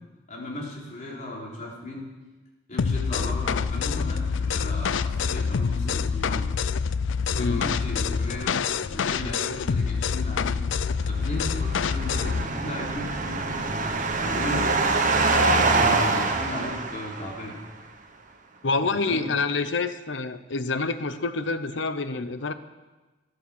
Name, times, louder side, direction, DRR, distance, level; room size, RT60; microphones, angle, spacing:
voice 1, 0.3-2.1 2.7-6.5 7.4-10.6 11.1-14.6 15.3-17.6 19.0-19.3, left 1 dB, 40° left, -3 dB, 3.7 m, -36 dB
sound 1, 2.8-12.5, left 6 dB, 90° left, 0.5 m, -26 dB
voice 2, 7.3-7.7 18.6-22.5, left 3 dB, 70° left, 11 dB, 0.8 m, -27 dB
sound 2, 11.2-17.5, right 3 dB, 45° right, 1.3 m, -25 dB
13.0 x 11.5 x 7.2 m, 1.2 s
head